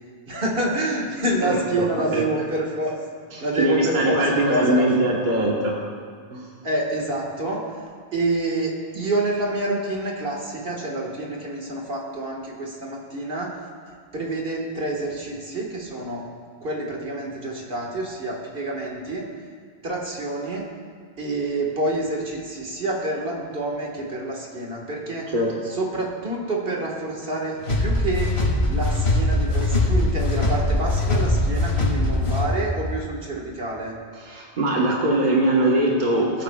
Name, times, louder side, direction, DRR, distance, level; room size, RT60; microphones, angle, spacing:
voice 1, 0.3-3.0 3.4-4.9 6.6-7.8 8.1-13.6 14.1-16.2 16.6-19.3 19.8-20.7 21.2-25.3 25.6-28.4 28.7-34.0, right 2 dB, 65° right, -2 dB, 1.8 m, -27 dB
voice 2, 1.4-2.2 3.3-5.8 6.3-6.5 25.3-25.5 34.2-36.4, right 1 dB, 50° right, -3 dB, 1.4 m, -22 dB
sound 1, 27.6-32.7, left 2 dB, 80° left, 2.4 m, -21 dB
20.5 x 9.0 x 2.3 m, 2.1 s
omnidirectional pair, 1.1 m